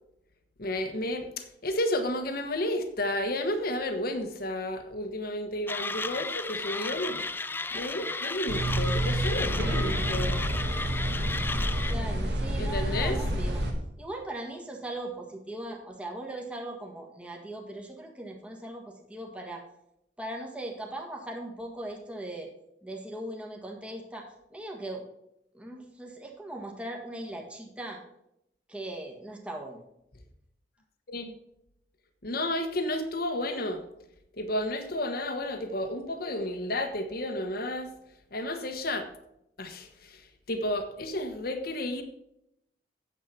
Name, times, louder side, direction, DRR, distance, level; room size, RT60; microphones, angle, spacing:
voice 1, 0.6-7.2 7.7-10.4 12.6-13.2 31.1-31.3 32.2-33.8 34.4-37.9 38.3-39.1 39.6-40.2 40.5-42.0, left 1 dB, 60° left, 7 dB, 1.2 m, -32 dB
Mechanisms, 5.7-11.9, left 3 dB, 10° left, 0.3 m, -34 dB
sound 1, 8.5-13.7, right 1 dB, 75° right, 2.1 m, -29 dB
voice 2, 11.8-13.6 14.0-19.6 20.2-22.5 22.8-25.0 25.5-28.0 28.7-29.8, right 1 dB, 5° right, 0 dB, 1.6 m, -39 dB
9.4 x 7.5 x 5.9 m, 0.79 s
head